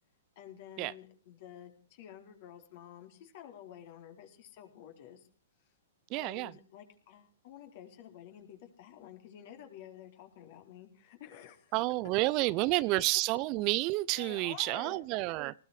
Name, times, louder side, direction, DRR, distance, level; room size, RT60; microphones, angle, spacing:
voice 1, 0.4-5.3 6.1-11.8 14.2-15.0, left 10 dB, 50° left, 4.1 m, -51 dB
voice 2, 6.1-6.5 11.7-15.5, right 20 dB, 40° right, 0.7 m, -30 dB
19.5 x 14.5 x 5.1 m
hypercardioid pair, 120°, 0 cm